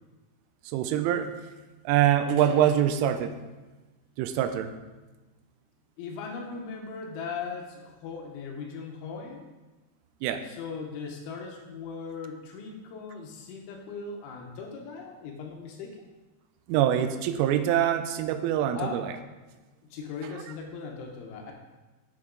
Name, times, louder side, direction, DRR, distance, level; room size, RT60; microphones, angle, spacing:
voice 1, 0.7-1.3 1.9-3.3 4.2-4.7 10.2-10.4 16.7-19.0, right 10 dB, 85° right, 9 dB, 3.0 m, -24 dB
voice 2, 6.0-9.5 10.4-16.1 18.7-19.0 19.9-21.5, left 5 dB, 75° left, 1 dB, 3.1 m, -38 dB
8.1 x 7.9 x 3.8 m, 1.2 s
omnidirectional pair, 5.9 m